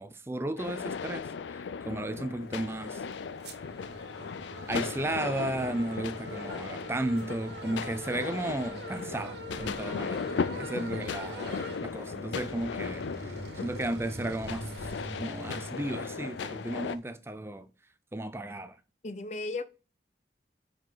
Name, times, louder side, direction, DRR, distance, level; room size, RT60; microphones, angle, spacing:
voice 1, 0.0-3.0 4.7-10.3 10.6-14.9 15.2-17.7 18.1-18.8, right 1 dB, 15° right, 0.4 m, -34 dB
sound 1, 0.6-17.0, left 6 dB, 90° left, 0.4 m, -37 dB
sound 2, 2.4-17.0, right 2 dB, 70° right, 1.9 m, -44 dB
voice 2, 19.0-19.6, left 3 dB, 40° left, 0.6 m, -37 dB
9.5 x 4.6 x 4.0 m
head